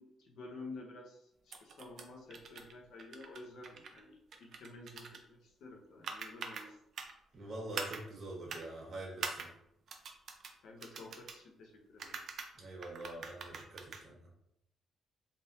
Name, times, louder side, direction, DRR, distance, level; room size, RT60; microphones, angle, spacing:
voice 1, 0.0-6.8 10.6-12.2, left 2 dB, 75° left, 1 dB, 0.8 m, -51 dB
sound 1, 1.5-2.1 2.3-2.7 3.0-4.0 4.3-5.2 6.0-6.7 7.0-7.1 7.7-8.0 8.5-8.6 9.2-9.5 9.9-10.5 10.8-11.4 12.0-12.5 12.8-14.0, right 5 dB, 60° right, 0.5 m, -43 dB
voice 2, 7.3-9.5 12.5-14.3, right 2 dB, 45° right, -2 dB, 1.2 m, -45 dB
3.4 x 2.6 x 2.7 m, 0.78 s
cardioid pair, 90°, 0 cm